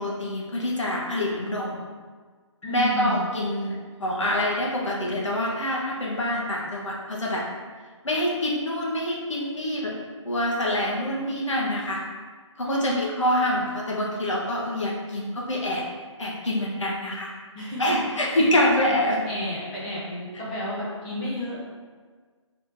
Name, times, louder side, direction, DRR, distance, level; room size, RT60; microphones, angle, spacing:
voice 1, 0.0-1.8 2.7-7.5 8.0-9.9 10.2-12.0 12.6-15.8 16.2-17.3 17.8-19.2, left 1 dB, 70° left, -3 dB, 1.2 m, -26 dB
voice 2, 2.6-3.3 12.6-13.1 17.5-18.5 18.9-19.0 19.3-21.6, left 1 dB, 15° left, -7 dB, 0.6 m, -32 dB
5.0 x 3.4 x 2.6 m, 1.5 s
figure-of-eight pair, 150°, 16 cm